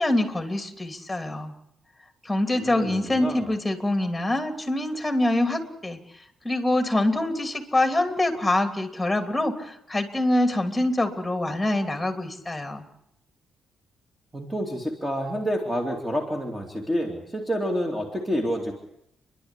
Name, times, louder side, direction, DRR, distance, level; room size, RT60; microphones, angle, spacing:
voice 1, 0.0-1.5 2.2-6.0 6.4-12.8, left 1 dB, 5° left, 6 dB, 3.0 m, -25 dB
voice 2, 2.5-3.5 14.3-18.7, equal, 10° right, 1 dB, 3.0 m, -28 dB
29.0 x 11.5 x 10.0 m, 0.79 s
cardioid pair, 120°, 0 cm